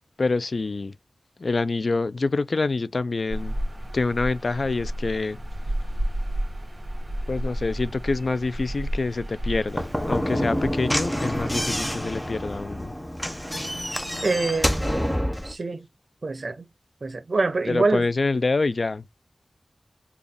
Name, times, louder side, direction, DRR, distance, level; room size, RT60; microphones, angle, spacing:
voice 1, 0.2-0.9 1.4-3.5 3.9-5.4 7.3-12.9 17.7-19.0, left 3 dB, 70° left, 0.3 m, -26 dB
sound 1, 3.3-12.0, equal, 30° right, 1.8 m, -32 dB
Slam / Knock, 9.7-15.5, equal, 10° left, 0.6 m, -27 dB
voice 2, 14.2-15.2 15.4-15.9 16.2-16.7 17.0-18.1, right 3 dB, 65° right, 0.6 m, -25 dB
3.9 x 2.3 x 3.4 m
wide cardioid pair, 65°, 0 cm